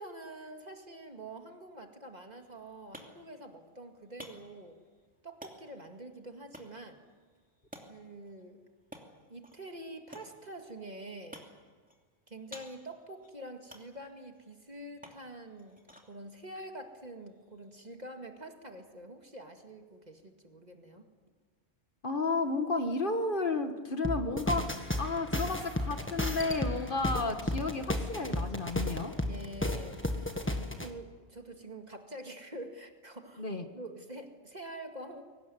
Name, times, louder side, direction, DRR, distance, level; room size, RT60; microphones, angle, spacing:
voice 1, 0.0-4.8 5.2-7.0 7.9-8.6 9.3-11.4 12.3-15.8 16.1-21.1 29.3-30.3 30.7-33.4 33.7-35.2, right 1 dB, 35° right, 4 dB, 2.2 m, -46 dB
sound 1, 2.3-18.0, equal, 5° right, 2.7 m, -55 dB
voice 2, 22.0-29.1 33.4-33.7, left 3 dB, 45° left, 7 dB, 1.7 m, -32 dB
sound 2, 24.0-30.9, left 1 dB, 10° left, 1.6 m, -33 dB
23.0 x 19.0 x 9.4 m, 1.5 s
omnidirectional pair, 1.2 m